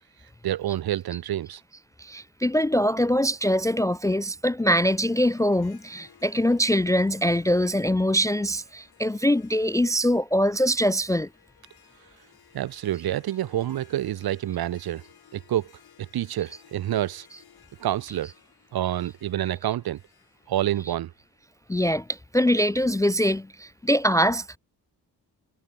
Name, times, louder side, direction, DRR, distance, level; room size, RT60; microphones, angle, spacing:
voice 1, 0.4-1.6 12.5-15.0 15.3-15.7 16.1-17.2 17.8-18.3 18.7-20.0 20.5-21.1, right 12 dB, 65° right, 0.9 m, -28 dB
voice 2, 2.0-11.3 17.3-17.4 18.2-18.3 21.7-24.6, equal, 10° left, 0.4 m, -23 dB
Harp, 4.6-21.9, left 9 dB, 70° left, 6.9 m, -58 dB
cardioid pair, 130°, 39 cm